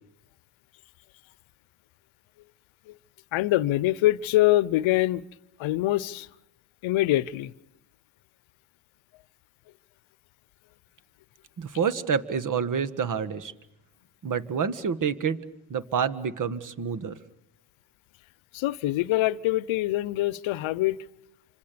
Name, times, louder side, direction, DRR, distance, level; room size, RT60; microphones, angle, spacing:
voice 1, 3.3-5.2 5.6-6.3 6.8-7.5 18.5-21.0, left 16 dB, 70° left, 0.9 m, -24 dB
voice 2, 11.6-13.5 14.2-15.4 15.7-17.2, right 6 dB, 40° right, 1.6 m, -28 dB
28.0 x 25.5 x 6.9 m
cardioid pair, 105°, 49 cm